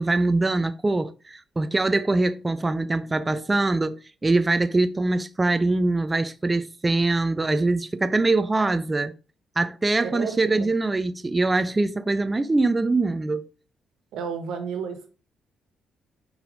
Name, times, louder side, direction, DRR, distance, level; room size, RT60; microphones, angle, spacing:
voice 1, 0.0-9.1 9.6-13.5, right 2 dB, 20° right, 0.4 m, -23 dB
voice 2, 10.0-10.7 14.1-15.1, right 6 dB, 85° right, 1.4 m, -32 dB
4.9 x 4.7 x 5.1 m
cardioid pair, 90°, 0 cm